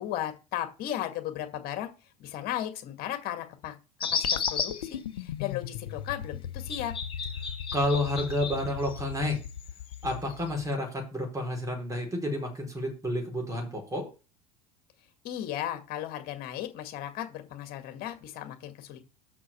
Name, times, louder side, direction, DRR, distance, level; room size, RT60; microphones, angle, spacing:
voice 1, 0.0-1.9 2.2-3.7 4.1-6.9 15.2-19.0, left 12 dB, 55° left, 7 dB, 2.1 m, -35 dB
sound 1, 4.0-4.9 6.7-9.2 9.4-10.6, left 6 dB, 25° left, 3.9 m, -33 dB
sound 2, 4.2-10.8, left 9 dB, 80° left, 0.8 m, -39 dB
voice 2, 7.7-9.4 10.0-14.1, left 1 dB, 15° right, 2 dB, 4.6 m, -30 dB
6.2 x 5.9 x 6.9 m, 0.31 s
hypercardioid pair, 85°, 19 cm